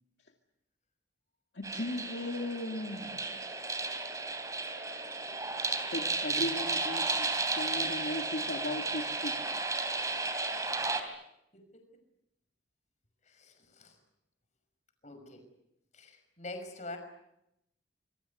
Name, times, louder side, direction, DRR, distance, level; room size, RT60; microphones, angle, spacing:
voice 1, 1.5-3.1 5.3-5.4 5.9-9.5, left 1 dB, 65° left, 2 dB, 2.3 m, -37 dB
sound 1, 1.6-11.0, right 3 dB, 15° right, 3.2 m, -34 dB
voice 2, 13.3-14.0 15.0-15.4 15.9-17.0, left 2 dB, 40° left, 6 dB, 6.0 m, -46 dB
26.5 x 24.0 x 8.5 m, 0.82 s
head